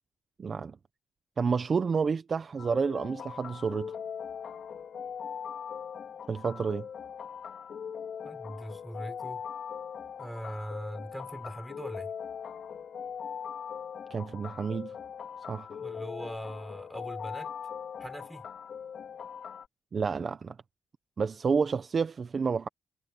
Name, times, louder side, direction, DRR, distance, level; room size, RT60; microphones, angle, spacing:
voice 1, 0.4-0.8 1.4-3.9 6.3-6.9 14.1-15.0 15.5-15.7 19.9-20.6 21.2-22.7, right 5 dB, 40° right, 1.0 m, -29 dB
sound 1, 2.6-19.7, left 7 dB, 55° left, 4.1 m, -41 dB
voice 2, 8.2-9.4 10.2-12.1 15.8-17.5 18.0-18.5, equal, 5° right, 5.5 m, -41 dB
cardioid pair, 90°, 0 cm